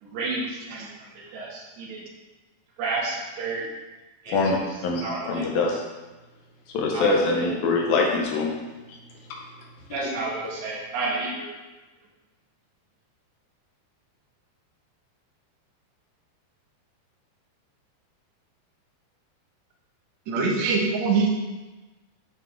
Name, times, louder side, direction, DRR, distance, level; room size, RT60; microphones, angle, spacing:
voice 1, 0.0-0.9 1.3-2.1 2.8-3.6 4.2-4.6 5.0-5.6 6.9-7.4 9.9-11.5, right 3 dB, 85° right, -5 dB, 3.7 m, -31 dB
voice 2, 4.3-5.9 6.7-8.5 8.9-9.0 9.3-9.4, left 3 dB, 75° left, 0 dB, 2.4 m, -24 dB
voice 3, 20.3-21.3, right 4 dB, 70° right, 0 dB, 1.7 m, -23 dB
9.2 x 5.7 x 3.3 m, 1.2 s
omnidirectional pair, 4.7 m